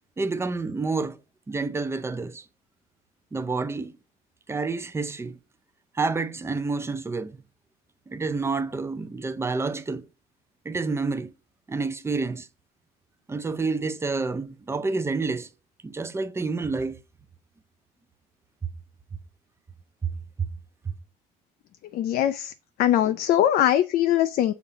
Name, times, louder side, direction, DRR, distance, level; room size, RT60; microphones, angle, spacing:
voice 1, 0.2-1.2 1.5-2.4 3.3-3.9 4.5-5.4 5.9-7.4 8.1-10.1 10.6-11.3 11.7-12.5 13.3-15.5 15.8-17.0 20.0-20.1 20.8-20.9, right 4 dB, 15° right, 0.5 m, -28 dB
voice 2, 21.9-22.5 22.8-24.5, left 11 dB, 65° left, 0.4 m, -21 dB
7.1 x 2.8 x 4.8 m
cardioid pair, 110°, 17 cm